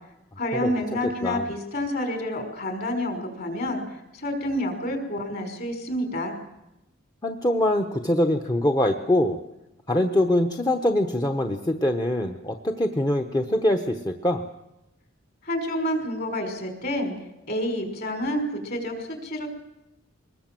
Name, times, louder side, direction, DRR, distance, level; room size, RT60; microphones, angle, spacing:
voice 1, 0.4-6.3 15.4-17.1 17.5-19.5, left 1 dB, 50° left, 5 dB, 5.3 m, -29 dB
voice 2, 7.2-9.4 9.9-14.4, left 1 dB, 20° left, 5 dB, 1.0 m, -23 dB
23.0 x 21.0 x 7.7 m, 0.91 s
head